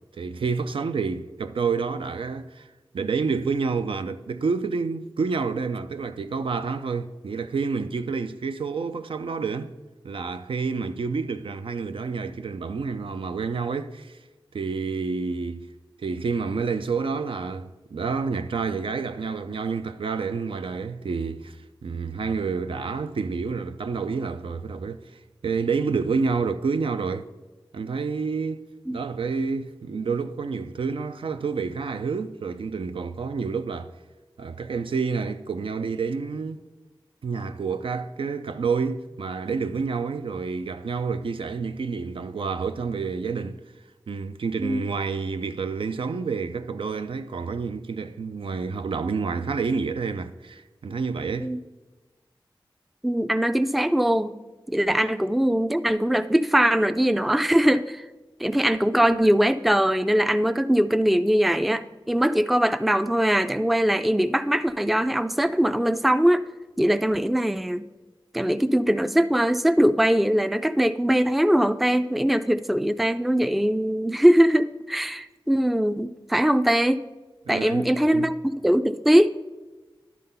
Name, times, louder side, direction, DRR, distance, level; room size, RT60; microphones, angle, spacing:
voice 1, 0.1-2.7 2.9-9.7 10.0-14.2 14.5-15.7 16.0-27.3 27.7-33.9 34.4-36.6 37.2-43.6 44.1-51.5 77.5-78.3, right 5 dB, 80° right, 0.4 m, -29 dB
voice 2, 53.0-54.4 54.7-58.1 58.4-66.4 66.8-67.9 68.3-77.0 77.5-79.3, equal, ahead, 0.3 m, -21 dB
11.0 x 3.8 x 5.5 m
wide cardioid pair, 60°, 9 cm